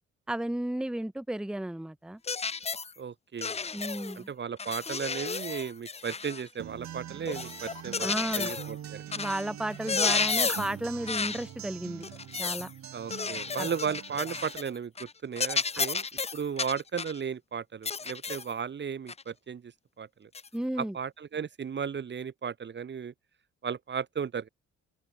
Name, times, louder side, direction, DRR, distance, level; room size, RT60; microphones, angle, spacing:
voice 1, 0.3-2.2 3.7-4.3 8.0-8.5 9.1-12.1 12.4-12.7 13.6-13.7 20.5-21.0, right 1 dB, ahead, 0.9 m, -33 dB
sound 1, 2.3-2.9 3.4-4.2 4.6-6.5 7.3-8.7 9.1-9.4 9.7-10.8 11.1-11.5 12.0-12.7 13.1-14.7 15.0-15.1 15.4-17.2 17.9-18.5 19.1-19.2 20.3-20.5, left 5 dB, 20° left, 0.6 m, -32 dB
voice 2, 3.0-3.6 4.2-8.1 8.3-9.0 12.9-16.0 16.3-19.7 20.0-20.3 20.8-23.1 23.6-24.5, right 7 dB, 35° right, 1.1 m, -35 dB
Acoustic guitar, 6.6-14.6, right 10 dB, 65° right, 3.5 m, -44 dB
open air
cardioid pair, 90°, 30 cm